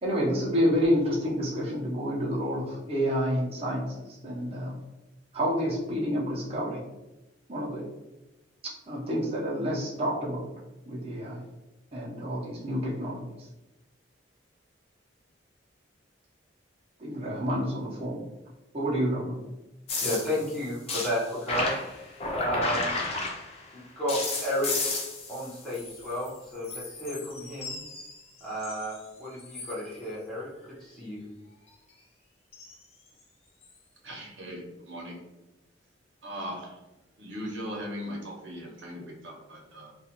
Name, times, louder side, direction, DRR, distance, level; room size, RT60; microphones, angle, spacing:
voice 1, 0.0-4.7 5.3-6.8 7.5-7.9 8.9-10.5 10.9-11.4 11.9-13.2 17.0-18.2 18.7-19.4, equal, 30° right, -4 dB, 0.6 m, -29 dB
sound 1, 19.9-23.7 24.1-26.4 26.6-29.0 29.4-29.8 32.5-32.7 33.6-33.7, left 3 dB, 30° left, 0.4 m, -33 dB
voice 2, 20.0-21.8 22.3-23.0 23.7-24.9 25.3-27.7 28.4-30.5 30.8-31.2, equal, 5° left, -9 dB, 0.9 m, -32 dB
voice 3, 34.0-35.2 36.2-36.8 37.2-39.9, equal, 75° right, -1 dB, 0.7 m, -39 dB
2.4 x 2.3 x 2.8 m, 0.99 s
head